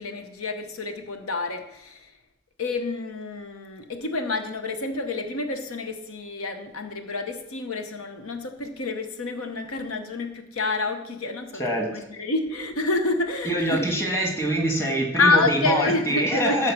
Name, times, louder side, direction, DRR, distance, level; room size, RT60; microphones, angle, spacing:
voice 1, 0.0-2.1 2.6-13.9 15.2-16.7, left 3 dB, 85° left, 7 dB, 1.0 m, -28 dB
voice 2, 13.4-16.7, right 1 dB, 10° left, 2 dB, 1.6 m, -24 dB
13.0 x 4.7 x 6.0 m, 0.86 s
head